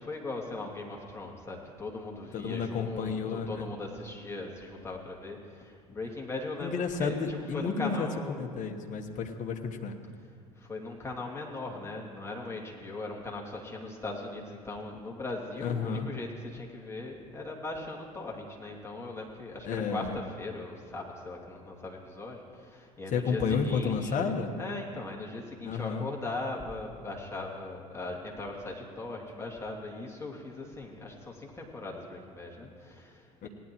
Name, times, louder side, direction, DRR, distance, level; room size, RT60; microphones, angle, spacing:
voice 1, 0.0-8.5 10.6-33.5, left 2 dB, 15° left, -3 dB, 2.6 m, -39 dB
voice 2, 2.3-3.7 6.6-9.9 15.6-16.1 19.6-20.2 23.1-24.5 25.6-26.1 33.4-33.5, left 5 dB, 40° left, 5 dB, 1.3 m, -31 dB
18.5 x 11.0 x 3.1 m, 2.2 s
figure-of-eight pair, 65°, 20 cm